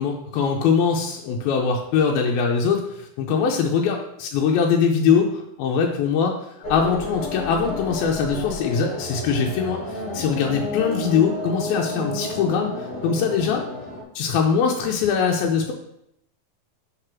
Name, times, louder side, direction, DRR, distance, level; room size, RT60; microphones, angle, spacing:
voice 1, 0.0-6.4 6.7-13.6 14.2-15.7, left 6 dB, 85° left, 1 dB, 2.5 m, -22 dB
sound 1, 6.6-14.0, left 1 dB, 55° left, 2.4 m, -31 dB
5.1 x 4.9 x 5.9 m, 0.78 s
omnidirectional pair, 4.2 m